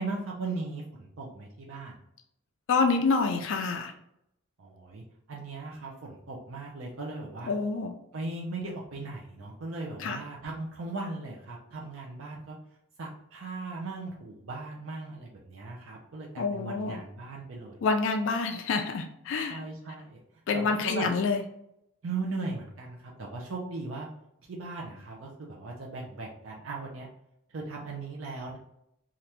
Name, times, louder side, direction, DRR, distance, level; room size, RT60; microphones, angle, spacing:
voice 1, 0.0-2.0 4.6-7.5 8.1-12.6 13.0-17.8 19.5-20.2 20.5-21.1 22.0-24.1 24.5-27.1 27.5-28.6, right 3 dB, 65° right, -2 dB, 0.5 m, -38 dB
voice 2, 2.7-3.9 7.5-7.9 10.0-10.2 16.4-17.0 17.8-19.6 20.5-21.4, left 4 dB, 60° left, 5 dB, 0.3 m, -27 dB
2.8 x 2.4 x 3.3 m, 0.77 s
head